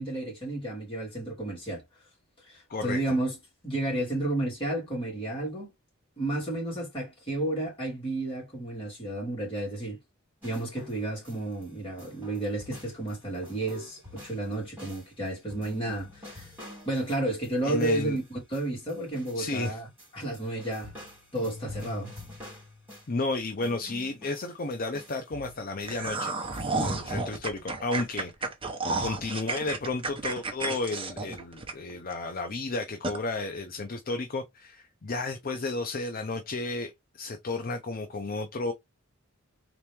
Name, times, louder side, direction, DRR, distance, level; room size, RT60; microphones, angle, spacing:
voice 1, 0.0-1.8 2.5-3.4 3.6-5.7 6.2-10.0 10.4-16.5 16.9-19.9 20.1-20.9 21.3-22.1, right 2 dB, 25° left, 2.6 m, -32 dB
sound 1, 10.4-11.7 12.0-19.7 20.0-23.3 23.6-26.8, left 2 dB, 10° right, 2.8 m, -47 dB
voice 2, 17.6-18.2 19.4-19.8 23.1-28.3 29.0-38.7, left 3 dB, 45° left, 0.6 m, -32 dB
sound 2, 25.8-32.1 32.5-32.6 33.0-33.2, right 3 dB, 25° right, 0.9 m, -32 dB
3.8 x 3.0 x 3.5 m
head